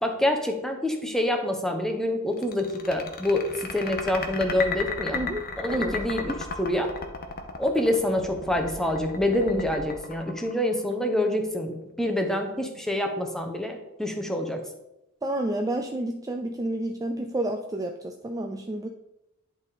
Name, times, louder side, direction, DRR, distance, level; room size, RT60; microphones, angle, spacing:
voice 1, 0.0-5.2 5.6-6.9 7.6-14.6, left 1 dB, ahead, 4 dB, 0.8 m, -26 dB
sound 1, 2.4-11.0, left 4 dB, 45° left, 0.8 m, -34 dB
voice 2, 5.1-6.0 15.2-18.9, right 1 dB, 15° right, 4 dB, 0.3 m, -30 dB
10.5 x 3.5 x 4.1 m, 0.91 s
head